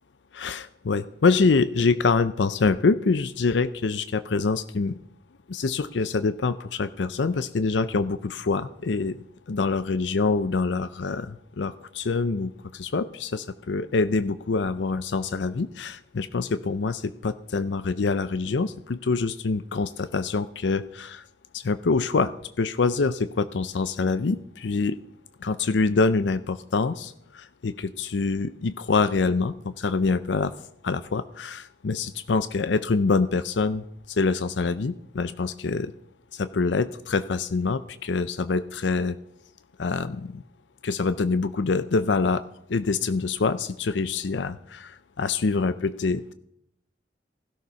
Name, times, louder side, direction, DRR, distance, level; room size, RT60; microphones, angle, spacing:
voice 1, 0.3-5.0 5.5-9.2 9.5-21.2 21.5-25.0 25.4-30.5 30.8-35.9 36.3-39.2 39.8-40.4 40.8-42.4 42.7-46.3, left 4 dB, 80° left, 13 dB, 0.5 m, -25 dB
16.5 x 12.0 x 5.7 m, 0.76 s
head